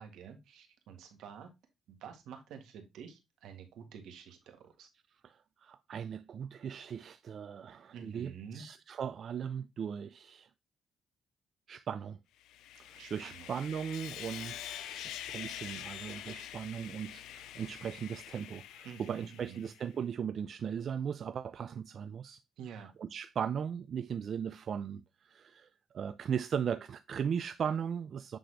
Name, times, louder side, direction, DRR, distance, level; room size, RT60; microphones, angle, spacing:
voice 1, 0.0-1.5 1.9-4.9 7.9-8.6 13.0-13.5 18.8-19.6 22.6-22.9, right 7 dB, 85° right, 1.5 m, -49 dB
voice 2, 5.2-10.5 11.7-12.2 12.8-22.4 23.0-25.7 25.9-28.4, right 7 dB, 55° right, 0.3 m, -38 dB
Sawing, 12.4-19.9, left 12 dB, 90° left, 0.4 m, -45 dB
7.9 x 3.7 x 3.2 m
cardioid pair, 90°, 0 cm